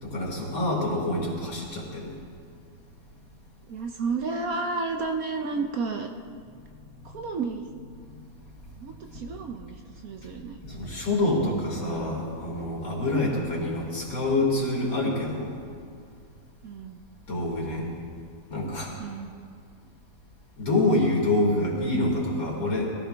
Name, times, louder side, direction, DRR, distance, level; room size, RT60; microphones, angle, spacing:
voice 1, 0.0-2.2 10.6-15.6 17.3-17.9 18.5-19.0 20.6-22.8, left 2 dB, 50° left, -3 dB, 3.6 m, -26 dB
voice 2, 3.7-6.1 7.0-7.7 8.8-10.6 16.6-17.0 19.0-19.3, right 4 dB, 60° right, 4 dB, 1.1 m, -31 dB
21.5 x 15.0 x 3.5 m, 2.2 s
omnidirectional pair, 1.9 m